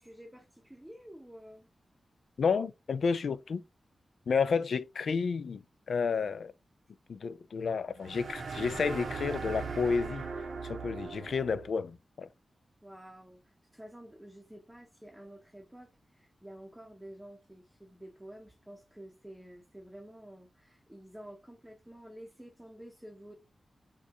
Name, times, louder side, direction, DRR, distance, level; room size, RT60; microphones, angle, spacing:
voice 1, 0.0-1.7 12.8-23.3, right 1 dB, 5° right, 0.7 m, -50 dB
voice 2, 2.4-3.6 4.3-5.6 5.9-6.5 7.1-10.2 10.6-12.3, left 5 dB, 75° left, 0.4 m, -31 dB
sound 1, 8.0-11.7, right 4 dB, 75° right, 0.8 m, -39 dB
4.5 x 2.3 x 2.8 m
wide cardioid pair, 100°, 0 cm